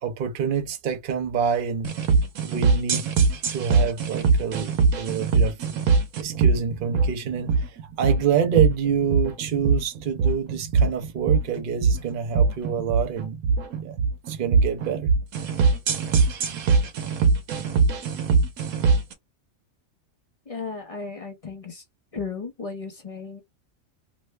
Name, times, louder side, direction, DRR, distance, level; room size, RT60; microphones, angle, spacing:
voice 1, 0.0-1.9 2.4-3.0 3.5-5.6 6.2-13.4 13.8-14.0 14.3-15.1, right 7 dB, 50° right, 0.7 m, -27 dB
sound 1, 1.8-19.1, right 4 dB, 85° right, 1.2 m, -22 dB
voice 2, 20.5-21.8 22.1-23.4, left 4 dB, 35° left, 0.6 m, -35 dB
3.1 x 2.1 x 3.2 m
omnidirectional pair, 1.5 m